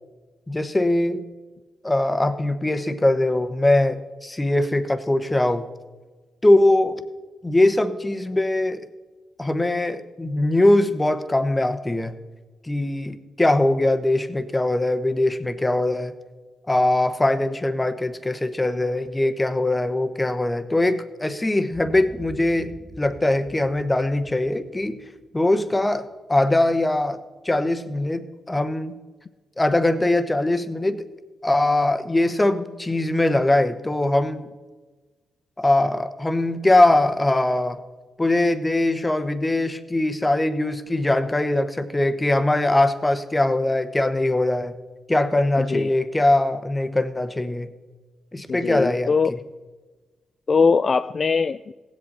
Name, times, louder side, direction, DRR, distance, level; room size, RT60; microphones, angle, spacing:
voice 1, 0.5-1.2 1.8-5.7 6.4-7.0 7.4-8.8 9.4-12.2 12.6-16.1 16.7-22.7 23.0-25.0 25.3-27.2 27.4-29.0 29.6-31.0 31.4-34.5 35.6-37.8 38.2-44.8 45.1-47.7 48.3-49.1, left 1 dB, 20° left, 10 dB, 1.0 m, -21 dB
Boom, 21.7-26.0, right 2 dB, 5° right, 1.0 m, -45 dB
voice 2, 45.6-45.9 48.5-49.3 50.5-51.7, left 5 dB, 50° left, 11 dB, 0.3 m, -21 dB
16.5 x 7.9 x 4.1 m, 1.3 s
supercardioid pair, 60°, 0 cm